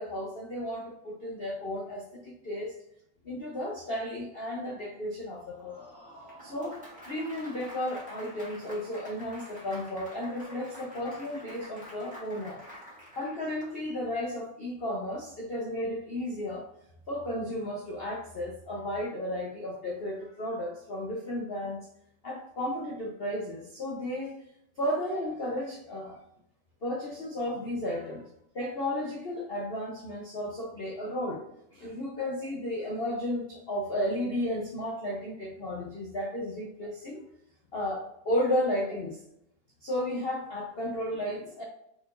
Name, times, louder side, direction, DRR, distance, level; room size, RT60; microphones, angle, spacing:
voice 1, 0.0-2.7 3.2-5.8 6.4-12.6 13.2-16.6 17.1-21.8 22.2-24.3 24.8-26.2 26.8-28.2 28.5-31.4 31.7-37.2 37.7-39.2 39.8-41.6, left 1 dB, 60° left, -2 dB, 0.6 m, -33 dB
Applause, 5.3-14.0, equal, 5° right, 1.5 m, -48 dB
4.9 x 4.2 x 2.6 m, 0.77 s
omnidirectional pair, 2.2 m